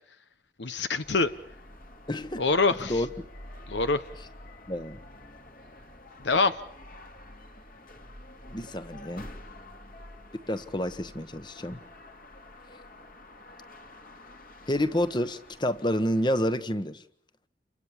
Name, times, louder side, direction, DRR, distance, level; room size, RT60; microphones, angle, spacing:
voice 1, 0.6-1.3 2.4-3.0 3.7-4.0 6.2-6.6, left 3 dB, 80° left, 11 dB, 1.0 m, -25 dB
sound 1, 1.0-16.5, left 1 dB, 50° left, 2.5 m, -48 dB
voice 2, 2.1-2.4 2.8-3.1 4.7-5.0 8.5-9.3 10.5-11.8 14.7-17.0, left 1 dB, 25° left, 13 dB, 1.2 m, -29 dB
29.5 x 23.5 x 7.2 m, 0.65 s
head